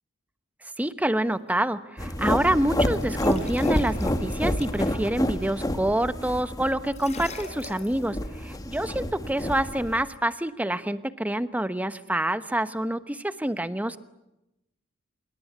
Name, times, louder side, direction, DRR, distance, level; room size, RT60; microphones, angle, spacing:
voice 1, 0.8-14.0, right 1 dB, 10° right, 12 dB, 1.0 m, -27 dB
sound 1, 2.0-10.0, left 1 dB, 20° left, 1.7 m, -29 dB
sound 2, 2.8-5.0 6.9-8.0, left 4 dB, 35° left, 3.7 m, -44 dB
26.0 x 22.0 x 9.4 m, 0.92 s
head